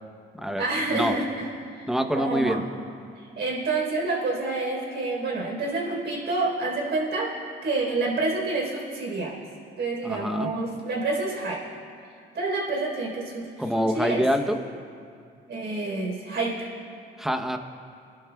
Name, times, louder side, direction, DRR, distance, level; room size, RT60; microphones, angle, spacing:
voice 1, 0.6-2.6 3.4-7.3 7.6-9.4 9.8-11.6 12.3-13.5 13.9-14.2 15.5-16.7, right 3 dB, 60° right, -2 dB, 4.0 m, -28 dB
voice 2, 1.9-2.6 10.0-10.5 13.6-14.6 17.2-17.6, equal, ahead, 6 dB, 0.9 m, -25 dB
28.0 x 11.5 x 2.4 m, 2.4 s
cardioid pair, 90°, 20 cm